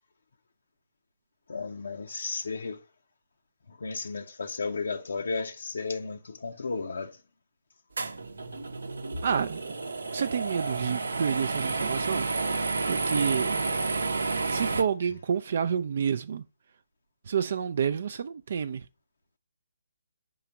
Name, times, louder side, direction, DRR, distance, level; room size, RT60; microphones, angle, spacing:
voice 1, 1.5-2.8 3.7-7.2 14.7-14.8, left 4 dB, 65° left, 0.6 m, -34 dB
sound 1, 8.0-14.8, right 3 dB, 75° right, 0.7 m, -30 dB
voice 2, 9.2-9.7 10.1-12.3 12.9-13.7 14.5-16.4 17.3-18.8, right 7 dB, 55° right, 0.3 m, -29 dB
4.9 x 3.9 x 5.6 m
figure-of-eight pair, 145°, 0 cm